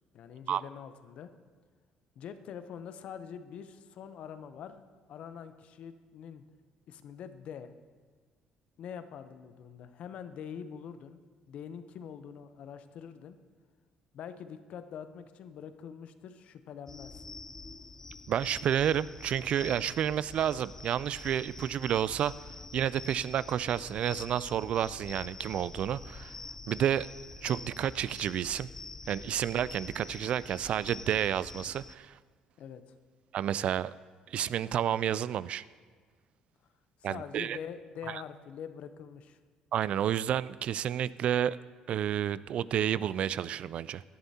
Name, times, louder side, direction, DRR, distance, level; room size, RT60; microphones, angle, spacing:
voice 1, 0.1-1.3 2.2-4.8 5.1-6.5 6.9-7.7 8.8-11.2 11.5-13.4 14.1-17.3 32.6-32.8 37.0-39.4, left 8 dB, 65° left, 10 dB, 0.8 m, -44 dB
sound 1, 16.9-32.0, left 3 dB, 20° left, 0.5 m, -46 dB
voice 2, 18.3-22.3 22.7-26.3 26.7-27.1 27.4-28.7 29.1-32.2 33.3-33.9 34.3-35.6 37.0-37.6 38.1-38.2 39.7-41.6 41.9-44.0, right 10 dB, 55° right, 18 dB, 0.3 m, -30 dB
16.5 x 11.0 x 2.8 m, 1.5 s
supercardioid pair, 85°, 2 cm